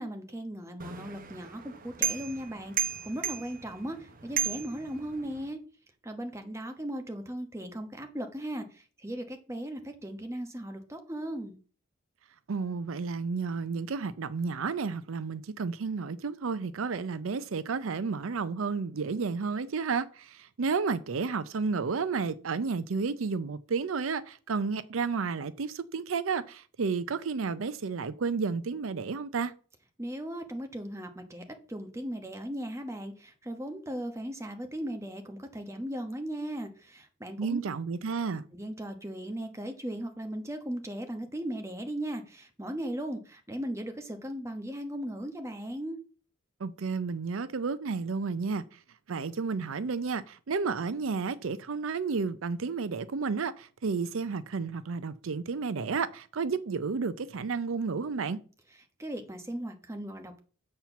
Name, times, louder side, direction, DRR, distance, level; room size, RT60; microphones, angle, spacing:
voice 1, 0.0-5.6 6.0-11.6 30.0-37.6 38.5-46.0 59.0-60.4, right 1 dB, 15° right, 1.1 m, -37 dB
sound 1, 0.8-5.5, right 8 dB, 40° right, 0.8 m, -35 dB
voice 2, 12.5-29.5 37.4-38.4 46.6-48.8 49.1-58.4, right 5 dB, 80° right, 0.5 m, -31 dB
7.4 x 4.4 x 7.0 m
head